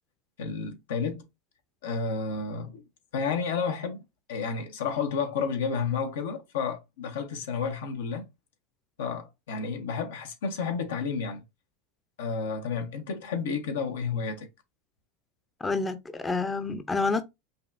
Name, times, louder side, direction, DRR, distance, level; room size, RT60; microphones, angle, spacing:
voice 1, 0.4-1.3 1.8-2.8 3.1-4.0 4.3-8.3 9.0-11.4 12.2-14.5, left 5 dB, 85° left, 0.9 m, -31 dB
voice 2, 15.6-17.2, left 3 dB, 15° left, 0.5 m, -28 dB
5.3 x 2.3 x 2.5 m
supercardioid pair, 115°, 0 cm